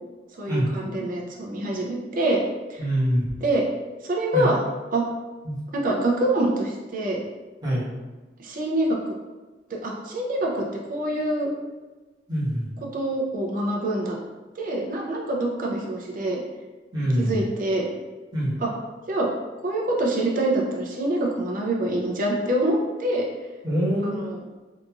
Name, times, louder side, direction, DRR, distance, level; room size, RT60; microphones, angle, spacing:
voice 1, 0.4-2.4 2.7-2.8 3.4-3.7 4.0-4.6 4.9-5.0 5.7-7.2 8.4-9.0 9.7-11.5 12.9-14.2 14.6-16.4 17.2-17.9 18.6-18.7 19.1-19.3 19.6-23.3 24.0-24.4, right 1 dB, 50° right, -1 dB, 0.5 m, -25 dB
voice 2, 2.8-3.2 4.3-4.5 5.4-5.6 7.6-7.9 12.3-12.7 16.9-17.3 18.3-18.5 23.6-24.3, equal, 25° right, -11 dB, 1.0 m, -24 dB
2.8 x 2.6 x 2.3 m, 1.3 s
head